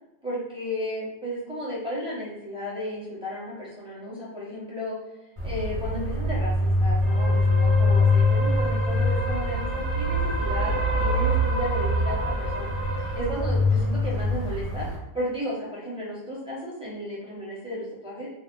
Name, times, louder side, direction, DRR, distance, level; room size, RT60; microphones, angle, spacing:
voice 1, 0.2-4.9 5.4-9.7 9.9-14.9 15.1-18.3, equal, 5° right, -8 dB, 0.8 m, -34 dB
sound 1, 5.4-15.0, left 1 dB, 30° right, 1.1 m, -23 dB
2.4 x 2.0 x 3.6 m, 0.93 s
omnidirectional pair, 1.1 m